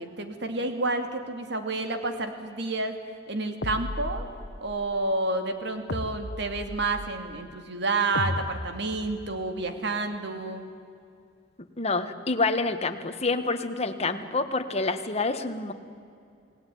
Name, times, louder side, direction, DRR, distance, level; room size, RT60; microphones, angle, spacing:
voice 1, 0.0-3.0 3.3-4.3 4.6-10.7, right 2 dB, 65° right, 7 dB, 2.6 m, -30 dB
sound 1, 3.6-4.7 5.9-7.2 8.1-9.4, left 1 dB, 65° left, 1.2 m, -35 dB
voice 2, 11.8-15.7, left 3 dB, 35° left, 8 dB, 1.6 m, -27 dB
28.5 x 18.5 x 9.4 m, 2.4 s
head